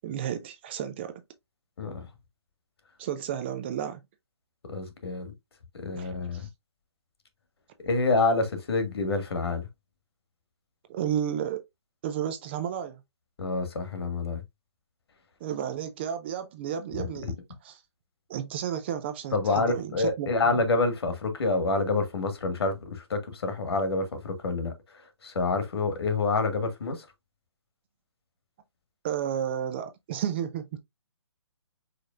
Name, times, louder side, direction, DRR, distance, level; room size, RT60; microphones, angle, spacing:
voice 1, 0.0-1.2 3.0-4.0 6.0-6.5 10.9-11.6 12.0-13.0 15.4-17.3 17.6-17.8 18.3-20.6 29.0-30.8, right 9 dB, 25° right, 0.4 m, -32 dB
voice 2, 4.7-5.3 5.7-6.5 7.8-9.7 13.4-14.4 17.0-17.3 19.3-27.1, left 3 dB, 60° left, 1.6 m, -28 dB
5.0 x 4.2 x 2.3 m
figure-of-eight pair, 140°, 15 cm